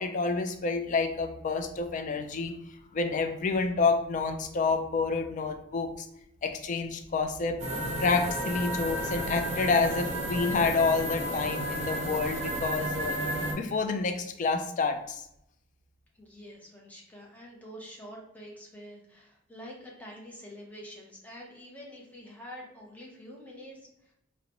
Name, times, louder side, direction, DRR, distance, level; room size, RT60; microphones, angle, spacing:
voice 1, 0.0-2.5 2.9-6.1 6.4-7.6 8.0-13.2 13.5-15.2, left 4 dB, 40° left, 6 dB, 0.3 m, -28 dB
sound 1, 7.6-13.5, right 1 dB, 35° right, 0.7 m, -32 dB
voice 2, 16.1-24.1, equal, 10° left, -3 dB, 0.7 m, -47 dB
3.8 x 2.1 x 2.9 m, 0.80 s
head